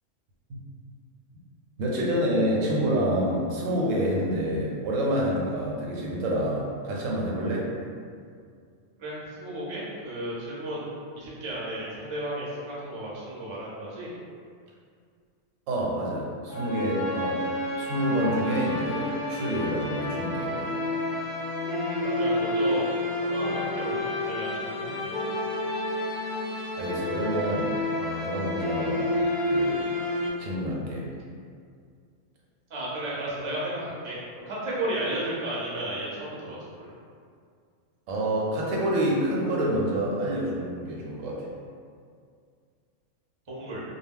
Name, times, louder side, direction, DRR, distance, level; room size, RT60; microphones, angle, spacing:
voice 1, 1.8-7.7 15.7-17.4 17.8-20.7 26.8-27.7 28.0-29.0 29.5-29.8 30.4-31.0 38.1-41.5, equal, 85° right, -3 dB, 1.0 m, -27 dB
voice 2, 9.0-10.9 11.2-14.1 22.0-22.9 23.2-24.9 32.7-34.2 34.4-36.9 43.5-43.8, right 1 dB, 40° right, -7 dB, 0.4 m, -33 dB
sound 1, 16.5-30.3, left 1 dB, 60° left, 0.6 m, -29 dB
2.2 x 2.0 x 3.5 m, 2.2 s
omnidirectional pair, 1.3 m